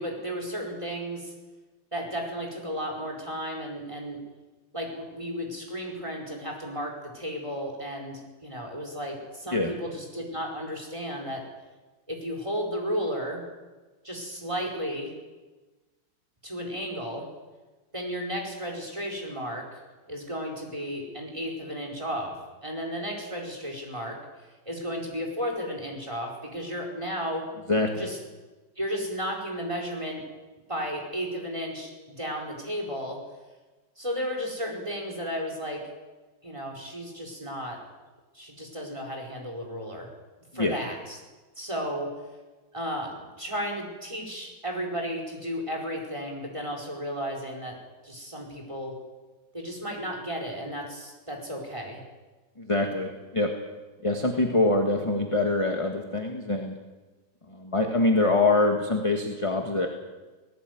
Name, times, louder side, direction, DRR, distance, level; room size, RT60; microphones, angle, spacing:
voice 1, 0.0-1.3 1.9-4.2 4.7-11.4 12.1-13.4 14.0-15.1 16.4-17.3 17.9-19.7 20.1-22.4 22.6-24.2 24.7-27.5 28.0-28.2 28.8-30.2 30.7-33.2 34.0-35.8 36.4-37.8 38.3-40.1 40.5-41.2 41.6-42.1 42.7-47.8 48.0-49.0 49.5-52.0, equal, 15° right, 1 dB, 4.7 m, -33 dB
voice 2, 27.7-28.0 40.5-40.8 52.6-53.5 54.0-56.7 57.5-59.9, left 2 dB, 15° left, 3 dB, 1.7 m, -24 dB
18.5 x 17.5 x 9.5 m, 1.2 s
omnidirectional pair, 2.0 m